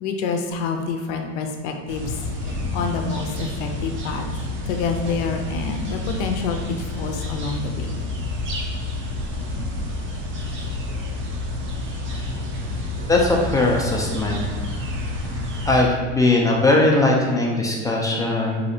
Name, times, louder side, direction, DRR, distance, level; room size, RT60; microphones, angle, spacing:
voice 1, 0.0-2.2 2.5-4.3 4.7-7.9, left 4 dB, 75° left, 4 dB, 0.5 m, -27 dB
sound 1, 1.9-15.8, left 2 dB, 35° right, 0.6 m, -29 dB
voice 2, 13.1-14.4 15.7-18.6, left 2 dB, 10° left, -2 dB, 0.4 m, -19 dB
3.2 x 2.8 x 2.6 m, 1.5 s
supercardioid pair, 95°, 35 cm